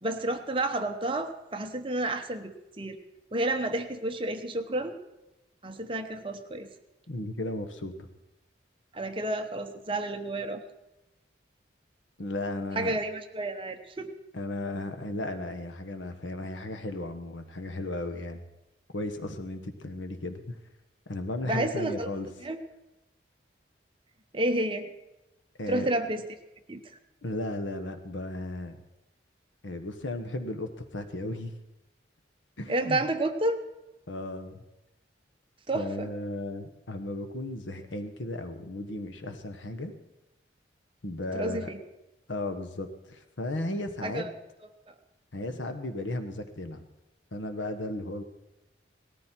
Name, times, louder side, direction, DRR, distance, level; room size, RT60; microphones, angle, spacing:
voice 1, 0.0-3.0 3.3-5.0 5.6-6.7 8.9-10.6 12.7-14.1 21.5-22.1 22.4-22.6 24.3-24.9 25.7-26.2 26.7-26.8 32.7-33.6 35.7-36.1 41.3-41.8 44.0-44.3, right 1 dB, 30° right, 6 dB, 1.0 m, -30 dB
voice 2, 7.1-8.1 12.2-12.9 14.3-18.4 18.9-20.6 21.1-22.3 25.6-25.9 27.2-28.8 29.6-31.5 32.6-33.0 34.1-34.6 35.7-39.9 41.0-41.7 42.3-44.3 45.3-46.8 47.3-48.2, left 1 dB, 90° left, 8 dB, 1.3 m, -35 dB
18.5 x 13.5 x 4.5 m, 0.98 s
head